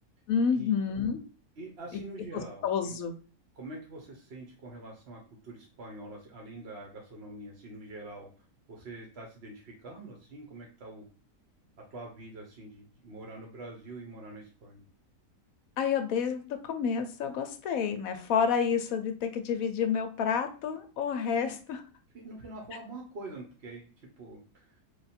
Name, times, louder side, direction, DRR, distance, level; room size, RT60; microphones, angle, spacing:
voice 1, 0.3-1.2 1.9-2.0 2.6-3.1 15.8-21.8, left 6 dB, 70° left, 7 dB, 0.9 m, -29 dB
voice 2, 1.6-3.0 3.5-11.1 11.8-14.8 21.3-21.6 22.1-23.9 24.2-24.8, right 2 dB, 50° right, -1 dB, 0.9 m, -45 dB
3.3 x 2.4 x 4.2 m, 0.38 s
omnidirectional pair, 1.7 m